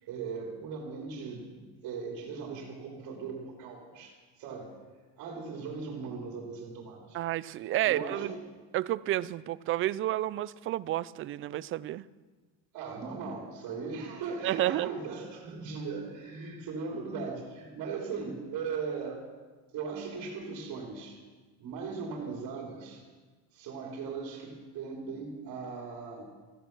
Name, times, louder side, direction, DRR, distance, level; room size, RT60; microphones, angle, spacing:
voice 1, 0.0-4.7 5.2-7.2 7.9-8.4 12.7-19.2 19.7-21.2 21.6-23.0 23.5-26.2, right 5 dB, 55° right, 0 dB, 3.5 m, -38 dB
voice 2, 7.1-8.3 8.7-12.0 14.4-14.9, right 14 dB, 35° right, 19 dB, 0.4 m, -30 dB
15.5 x 13.5 x 6.1 m, 1.3 s
cardioid pair, 135°, 38 cm